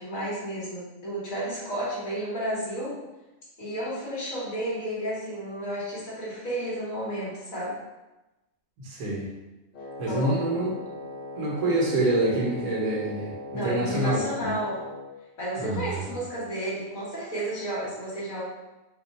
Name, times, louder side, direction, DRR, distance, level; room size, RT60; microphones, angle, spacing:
voice 1, 0.0-3.0 3.6-7.8 10.1-10.6 13.5-14.8 15.4-18.4, right 1 dB, 70° left, -7 dB, 2.0 m, -32 dB
voice 2, 8.8-9.3 10.0-10.7 11.3-14.5 15.6-16.0, right 1 dB, 80° right, -3 dB, 1.4 m, -26 dB
Wind instrument woodwind instrument, 9.7-15.1, left 1 dB, 55° left, 0.9 m, -39 dB
4.1 x 2.4 x 4.1 m, 1.0 s
omnidirectional pair, 1.5 m